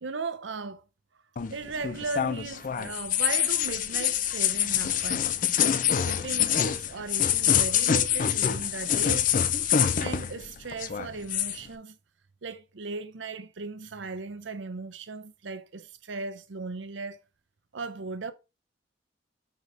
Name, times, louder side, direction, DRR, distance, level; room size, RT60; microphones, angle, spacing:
voice 1, 0.0-0.8 1.5-5.3 5.8-9.3 10.0-12.0 12.4-17.2 17.7-18.3, right 4 dB, 75° right, 0.7 m, -37 dB
sound 1, 1.4-10.5 10.7-11.6, left 9 dB, 45° left, 0.4 m, -26 dB
5.1 x 4.0 x 4.9 m
head